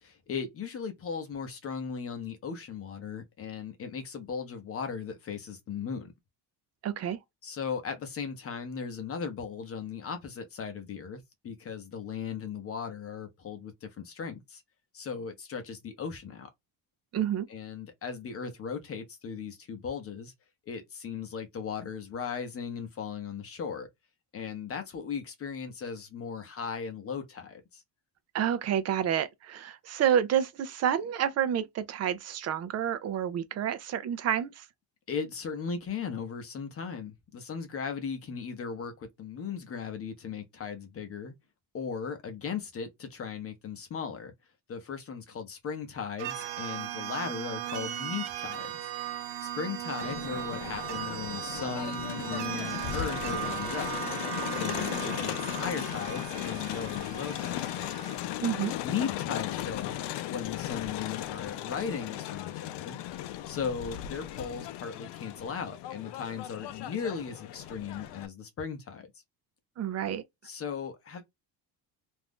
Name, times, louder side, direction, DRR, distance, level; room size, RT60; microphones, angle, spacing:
voice 1, 0.0-6.1 7.4-14.6 14.9-16.5 17.5-20.3 20.7-23.9 24.3-27.8 35.1-41.3 41.7-44.3 44.7-48.9 49.4-53.9 54.6-57.9 58.8-60.0 60.3-63.0 63.4-69.1 70.4-71.2, left 6 dB, 30° left, 0.7 m, -37 dB
voice 2, 6.8-7.2 17.1-17.5 28.3-34.6 58.4-58.8 69.8-70.2, right 9 dB, 40° right, 0.4 m, -29 dB
sound 1, 46.2-58.2, right 12 dB, 80° right, 0.8 m, -37 dB
Crowd, 50.0-68.3, left 13 dB, 70° left, 0.5 m, -37 dB
2.6 x 2.3 x 3.4 m
cardioid pair, 155°, 43 cm